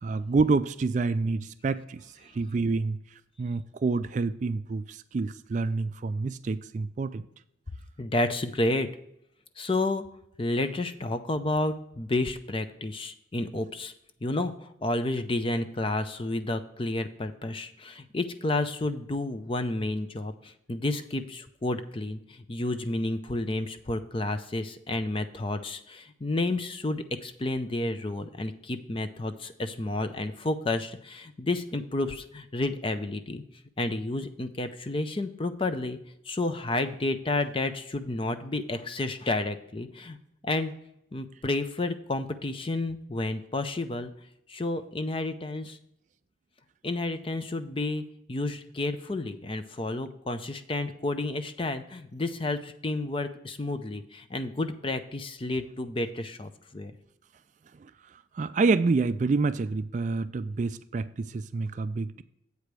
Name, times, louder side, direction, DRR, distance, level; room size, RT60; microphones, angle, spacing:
voice 1, 0.0-3.0 3.4-7.3 57.7-57.9 58.3-62.2, right 3 dB, 40° right, 13 dB, 0.3 m, -28 dB
voice 2, 8.0-8.9 9.6-10.0 10.4-13.9 14.2-33.4 33.8-36.0 36.3-40.2 40.4-40.7 41.1-44.1 44.5-45.8 46.8-48.0 48.3-56.9, left 2 dB, 30° left, 10 dB, 0.5 m, -31 dB
8.2 x 5.0 x 6.0 m, 0.77 s
head